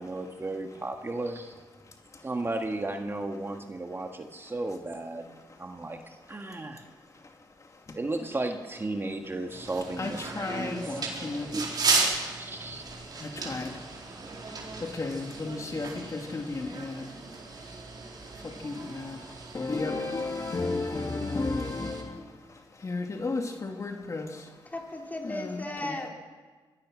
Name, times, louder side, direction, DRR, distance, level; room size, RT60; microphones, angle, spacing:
voice 1, 0.0-1.6 2.2-6.8 7.9-11.0 11.3-12.8, right 2 dB, 30° right, 4 dB, 1.8 m, -35 dB
voice 2, 6.4-6.8 7.1-7.3 7.6-8.0 10.0-11.6 13.1-14.0 14.5-17.7 18.2-24.6 25.2-26.0, left 3 dB, 40° left, 3 dB, 2.4 m, -34 dB
sound 1, 9.5-22.0, right 4 dB, 50° right, 4.5 m, -35 dB
voice 3, 24.7-26.1, left 1 dB, 20° left, 0 dB, 4.6 m, -36 dB
24.0 x 17.5 x 6.3 m, 1.4 s
cardioid pair, 75°, 9 cm